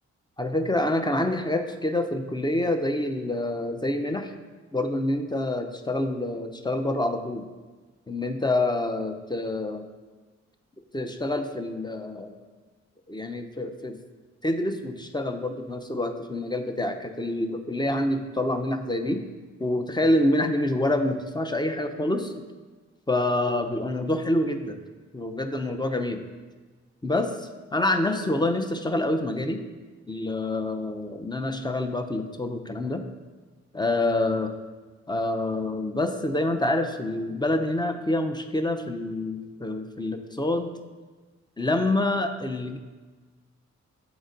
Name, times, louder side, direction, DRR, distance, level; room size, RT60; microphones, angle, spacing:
voice 1, 0.4-4.3 4.7-7.5 8.1-9.8 10.9-12.4 13.1-14.0 14.4-19.2 19.6-22.3 23.1-24.8 25.1-26.2 27.0-29.6 30.1-33.0 33.7-34.5 35.1-40.7 41.6-42.8, left 1 dB, 15° left, 6 dB, 0.6 m, -27 dB
8.0 x 4.0 x 3.8 m, 1.3 s
cardioid pair, 65°, 29 cm